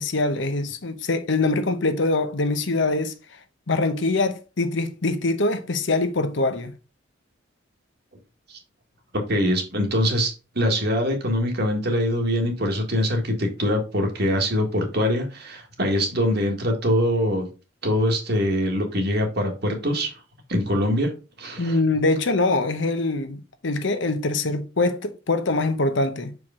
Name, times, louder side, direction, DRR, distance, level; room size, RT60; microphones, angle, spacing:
voice 1, 0.0-3.1 3.7-6.7 21.6-26.3, left 2 dB, 65° left, 0.8 m, -23 dB
voice 2, 9.1-17.5 17.8-20.1 20.5-21.1 21.4-21.8, equal, 55° right, 1.6 m, -23 dB
6.2 x 4.7 x 3.7 m
head